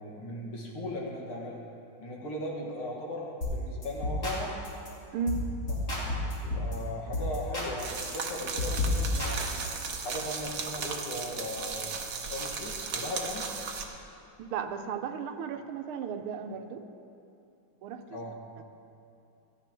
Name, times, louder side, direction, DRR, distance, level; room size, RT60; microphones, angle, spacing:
voice 1, 0.0-1.6 2.0-4.6 5.9-9.5 10.0-11.9 12.3-13.5 18.1-18.4, left 1 dB, 80° left, -2 dB, 2.7 m, -38 dB
sound 1, 3.4-3.6 3.8-4.4 4.6-4.9 5.3-5.4 5.7-6.7 7.1-7.7 8.0-10.0, left 2 dB, 40° left, 2.9 m, -31 dB
sound 2, 7.8-13.8, right 5 dB, 55° right, 1.3 m, -36 dB
voice 2, 14.5-16.8 17.8-18.0 18.6-18.7, right 6 dB, 85° right, 7 dB, 1.6 m, -34 dB
16.5 x 14.0 x 3.0 m, 2.9 s
omnidirectional pair, 2.3 m